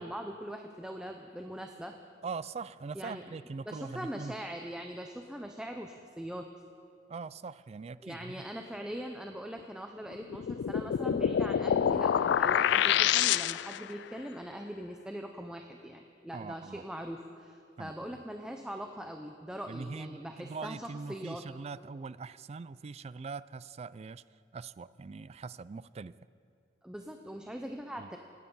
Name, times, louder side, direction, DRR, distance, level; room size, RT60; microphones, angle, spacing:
voice 1, 0.0-2.0 2.9-3.2 3.7-6.5 8.0-21.4 26.8-28.2, equal, 5° right, 3 dB, 0.7 m, -41 dB
voice 2, 2.2-4.3 7.1-8.4 16.3-16.8 17.8-18.2 19.7-24.2 24.5-26.1 28.0-28.1, right 4 dB, 35° right, 17 dB, 0.3 m, -42 dB
sound 1, 10.3-13.9, left 9 dB, 65° left, 0.3 m, -27 dB
26.5 x 9.3 x 5.5 m, 2.4 s
head